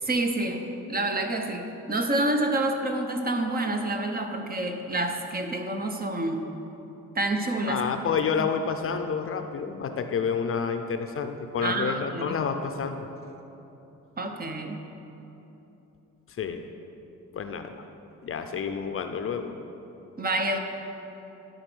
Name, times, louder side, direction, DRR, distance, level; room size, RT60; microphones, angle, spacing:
voice 1, 0.0-6.5 7.1-7.8 8.4-8.5 11.6-12.4 14.2-14.8 20.2-20.6, right 2 dB, 30° right, 4 dB, 0.9 m, -28 dB
voice 2, 7.7-13.1 16.4-16.7 17.3-17.8 18.2-19.5, left 6 dB, 45° left, 7 dB, 0.6 m, -29 dB
12.0 x 4.1 x 6.2 m, 3.0 s
cardioid pair, 90°, 30 cm